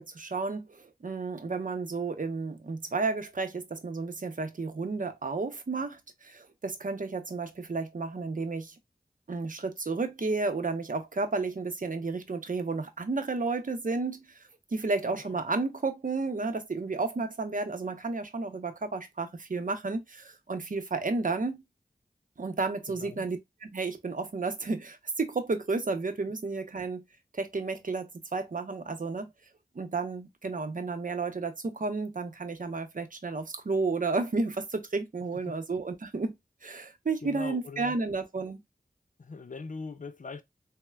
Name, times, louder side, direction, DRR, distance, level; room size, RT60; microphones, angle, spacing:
voice 1, 0.0-8.7 9.3-14.4 14.7-21.6 22.4-27.0 27.3-29.3 29.7-36.3 36.6-38.6, right 3 dB, 55° right, 0.7 m, -32 dB
voice 2, 15.1-15.4 22.9-23.3 35.5-35.6 37.2-38.0 39.2-40.4, left 4 dB, 55° left, 0.5 m, -41 dB
4.0 x 2.1 x 2.2 m
wide cardioid pair, 45°, 16 cm